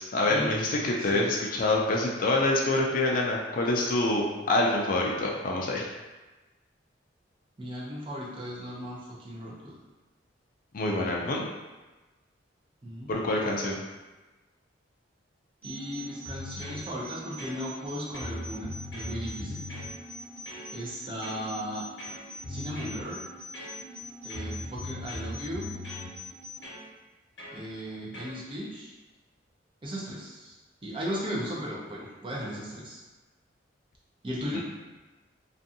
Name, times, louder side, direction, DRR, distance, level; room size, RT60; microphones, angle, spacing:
voice 1, 0.0-5.9 10.7-11.5 13.1-13.8, left 2 dB, 45° left, -2 dB, 0.4 m, -26 dB
voice 2, 7.6-9.8 12.8-13.1 15.6-19.6 20.7-21.8 22.5-23.2 24.2-25.7 27.5-28.9 29.8-30.6 30.8-33.0 34.2-34.7, equal, 25° right, -6 dB, 0.5 m, -36 dB
sound 1, 15.6-26.6, equal, 10° left, 1.1 m, -44 dB
sound 2, 16.2-16.8 17.4-17.9 18.1-19.9 20.5-20.7 21.2-21.5 22.0-23.0 23.5-24.0 24.3-26.1 26.6-26.8 27.4-27.6 28.1-28.4, left 1 dB, 70° left, 0.9 m, -39 dB
2.6 x 2.4 x 2.6 m, 1.2 s
head